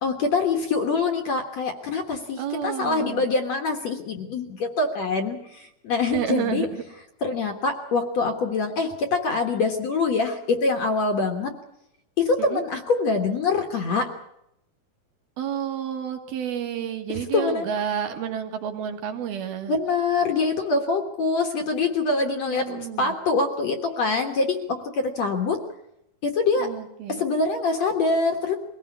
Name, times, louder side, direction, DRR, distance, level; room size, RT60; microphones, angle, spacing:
voice 1, 0.0-6.7 7.2-11.5 12.2-14.1 17.1-17.7 19.7-25.6 26.2-26.7 27.1-28.6, left 3 dB, 55° left, 5 dB, 2.2 m, -24 dB
voice 2, 2.4-3.3 6.1-6.8 12.4-12.6 15.4-19.7 22.5-23.2 26.6-27.2, right 9 dB, 75° right, 5 dB, 3.7 m, -30 dB
23.0 x 17.0 x 8.4 m, 0.82 s
omnidirectional pair, 4.5 m